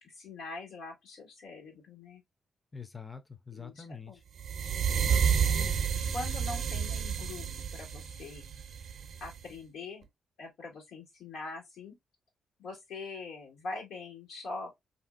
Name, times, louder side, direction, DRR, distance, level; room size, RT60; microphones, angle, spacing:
voice 1, 0.0-2.2 3.5-4.2 5.4-5.7 6.1-7.5 7.7-8.4 9.2-10.1 10.4-11.9 12.6-14.7, left 3 dB, 90° left, 1.4 m, -43 dB
voice 2, 2.7-4.2 4.9-5.6, left 6 dB, 20° left, 0.4 m, -45 dB
sound 1, 4.4-9.4, right 7 dB, 60° right, 0.5 m, -30 dB
3.1 x 2.5 x 2.3 m
cardioid pair, 115°, 0 cm